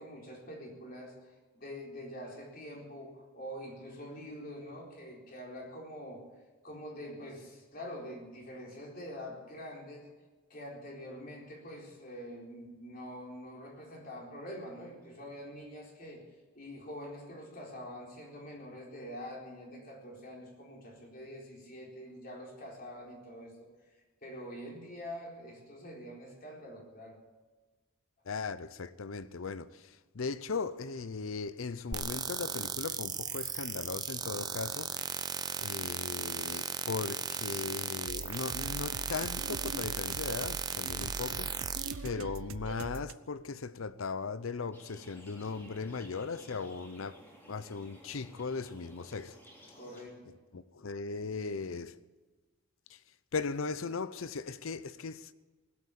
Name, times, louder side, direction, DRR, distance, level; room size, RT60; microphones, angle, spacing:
voice 1, 0.0-6.2 6.6-10.1 10.5-16.3 16.5-27.2 49.7-50.4, equal, 45° left, 4.1 m, -45 dB
voice 2, 28.2-34.9 35.6-41.6 42.0-49.4 50.5-52.0 52.9-53.0 53.3-55.3, left 4 dB, 80° left, 0.6 m, -38 dB
sound 1, 31.9-41.9, right 6 dB, 20° right, 0.7 m, -36 dB
sound 2, 38.0-43.1, right 4 dB, 90° right, 0.6 m, -42 dB
sound 3, 44.7-50.0, equal, 10° left, 3.0 m, -55 dB
20.0 x 8.5 x 8.5 m
head